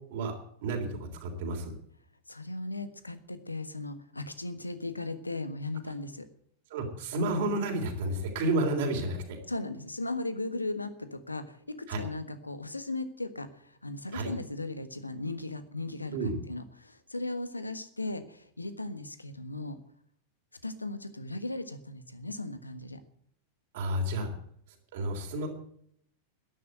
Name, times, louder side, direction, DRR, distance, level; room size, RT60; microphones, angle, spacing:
voice 1, 0.6-1.7 6.7-9.4 11.9-12.0 14.1-14.3 16.1-16.4 23.7-24.3 24.9-25.5, right 2 dB, 55° right, 2 dB, 3.5 m, -31 dB
voice 2, 2.3-6.3 9.5-19.8 20.6-23.0, left 2 dB, 85° left, 11 dB, 1.4 m, -37 dB
13.0 x 11.0 x 7.9 m, 0.66 s
figure-of-eight pair, 90°, 0 cm